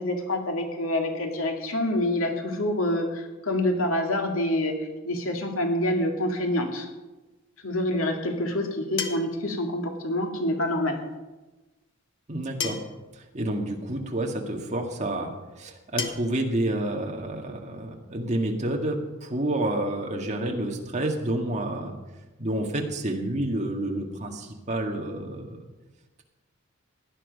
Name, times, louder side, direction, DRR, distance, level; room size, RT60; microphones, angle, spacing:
voice 1, 0.0-4.8 5.0-6.9 7.6-11.0, left 1 dB, 85° left, 3 dB, 2.2 m, -27 dB
sound 1, 7.3-7.4 9.0-9.5 11.0-11.1 12.6-13.1 14.3-14.4 16.0-16.1, left 5 dB, 60° left, 1.2 m, -31 dB
voice 2, 12.3-12.8 13.2-15.3 15.6-21.9 22.4-25.7, right 1 dB, 35° right, 2 dB, 1.8 m, -29 dB
16.5 x 10.5 x 5.3 m, 1.1 s
head